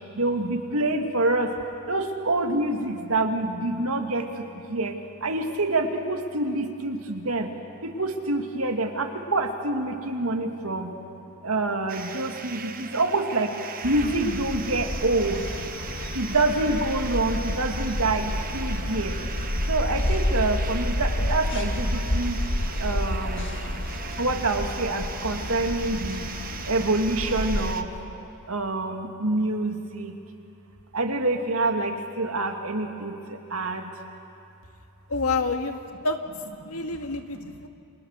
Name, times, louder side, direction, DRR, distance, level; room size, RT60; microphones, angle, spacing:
voice 1, 0.2-1.5 1.9-5.0 5.2-7.5 7.8-10.9 11.4-13.5 13.8-15.4 16.1-19.2 19.7-22.4 22.8-23.5 24.2-26.3 26.6-27.9 28.5-30.1 30.9-33.9 36.6-36.8, right 2 dB, 70° right, 4 dB, 2.3 m, -26 dB
sound 1, 11.9-27.8, right 7 dB, 40° right, 1.1 m, -39 dB
sound 2, 13.8-27.7, left 1 dB, 55° left, 1.6 m, -29 dB
voice 2, 35.1-36.2 36.6-37.7, left 3 dB, 80° left, 5 dB, 1.9 m, -28 dB
30.0 x 26.0 x 6.7 m, 2.6 s
head